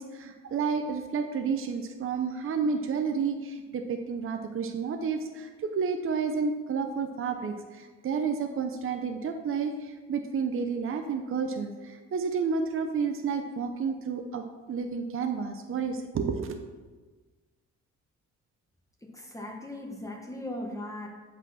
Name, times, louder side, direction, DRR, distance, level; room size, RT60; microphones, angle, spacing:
voice 1, 0.0-16.6, right 5 dB, 45° right, 6 dB, 0.7 m, -31 dB
voice 2, 19.0-21.1, left 1 dB, 10° left, 0 dB, 1.3 m, -38 dB
8.3 x 4.1 x 5.7 m, 1.3 s
cardioid pair, 90°, 30 cm